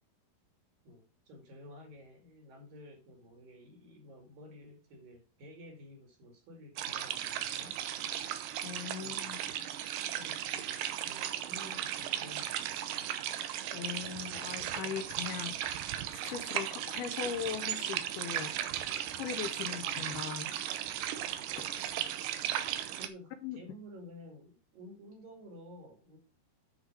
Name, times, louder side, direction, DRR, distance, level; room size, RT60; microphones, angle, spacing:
voice 1, 0.8-7.7 9.0-13.1 14.8-15.0 15.4-15.6 18.9-19.1 19.6-19.9 21.5-21.8 23.0-26.2, left 1 dB, 60° right, 4.0 m, -53 dB
sound 1, 6.8-23.1, right 11 dB, 85° right, 1.9 m, -36 dB
voice 2, 8.6-9.5 13.7-15.5 16.1-18.5 19.2-20.5 23.4-23.6, left 9 dB, 75° left, 2.7 m, -39 dB
10.0 x 5.5 x 4.8 m
omnidirectional pair, 4.8 m